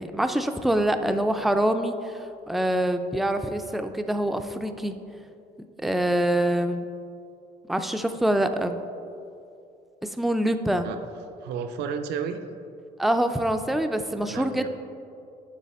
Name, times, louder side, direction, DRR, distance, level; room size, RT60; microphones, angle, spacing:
voice 1, 0.0-4.9 5.8-6.9 7.7-8.8 10.2-10.9 13.0-14.7, right 1 dB, ahead, 7 dB, 0.3 m, -25 dB
voice 2, 11.4-12.4 14.3-14.7, right 7 dB, 80° right, 8 dB, 0.5 m, -32 dB
7.5 x 5.5 x 4.1 m, 2.6 s
cardioid pair, 110°, 17 cm